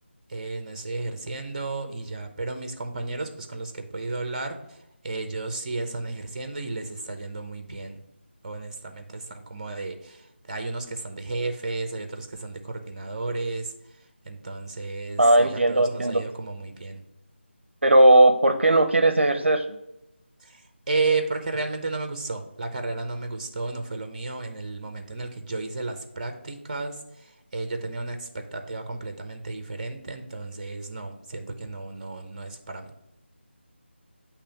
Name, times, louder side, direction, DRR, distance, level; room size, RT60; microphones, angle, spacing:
voice 1, 0.3-4.8 5.0-8.0 8.4-13.7 14.3-17.0 20.4-32.9, right 3 dB, 35° right, 7 dB, 0.8 m, -33 dB
voice 2, 15.2-16.2 17.8-19.6, right 1 dB, 70° right, 7 dB, 0.6 m, -17 dB
8.4 x 3.0 x 4.8 m, 0.85 s
figure-of-eight pair, 160°, 6 cm